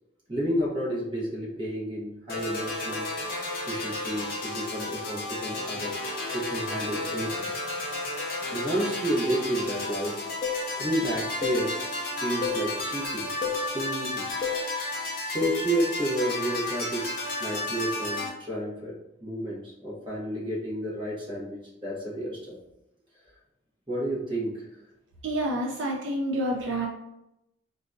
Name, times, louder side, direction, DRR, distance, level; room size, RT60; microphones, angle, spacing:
voice 1, 0.3-3.1 3.4-6.0 6.3-7.5 8.5-10.2 10.8-11.8 12.2-14.3 15.2-22.6 23.9-24.7, right 1 dB, 25° right, -6 dB, 1.2 m, -31 dB
sound 1, 2.3-18.3, left 2 dB, 50° left, 0.8 m, -33 dB
sound 2, 10.4-10.7 11.4-11.7 12.4-12.7 13.4-13.7 14.4-14.7 15.4-15.7, left 6 dB, 30° left, 0.4 m, -30 dB
voice 2, 25.2-26.9, right 1 dB, 75° right, -1 dB, 0.5 m, -28 dB
3.9 x 2.3 x 2.6 m, 0.85 s
head